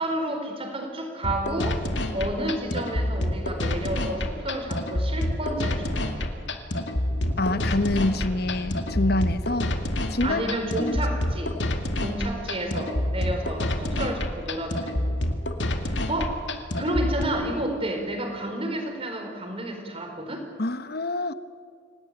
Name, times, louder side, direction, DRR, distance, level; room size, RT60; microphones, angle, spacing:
voice 1, 0.0-1.8 2.1-6.3 10.2-11.6 11.9-15.1 15.8-16.4 16.8-20.5, right 1 dB, 30° right, 4 dB, 4.6 m, -30 dB
sound 1, 1.2-17.2, left 1 dB, 75° left, 2.2 m, -28 dB
Fire, 7.0-12.1, equal, 85° right, 5.4 m, -41 dB
voice 2, 7.4-9.7 10.1-10.5 10.8-11.0 20.6-21.3, left 2 dB, 55° left, 12 dB, 1.1 m, -26 dB
27.0 x 18.0 x 9.1 m, 2.3 s
head